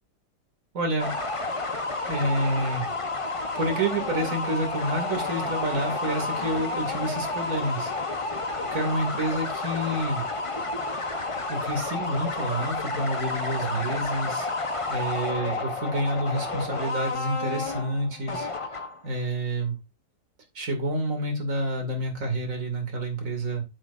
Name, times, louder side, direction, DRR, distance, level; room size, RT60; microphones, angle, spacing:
voice 1, 0.7-1.1 2.1-2.9 3.6-7.9 8.2-8.4 8.7-10.2 11.5-14.5 14.9-18.5 19.0-19.8 20.5-23.6, right 1 dB, 50° right, 3 dB, 2.8 m, -28 dB
sound 1, 1.0-19.1, left 3 dB, 25° left, 0.8 m, -30 dB
9.6 x 7.8 x 2.6 m, 0.23 s
omnidirectional pair, 1.8 m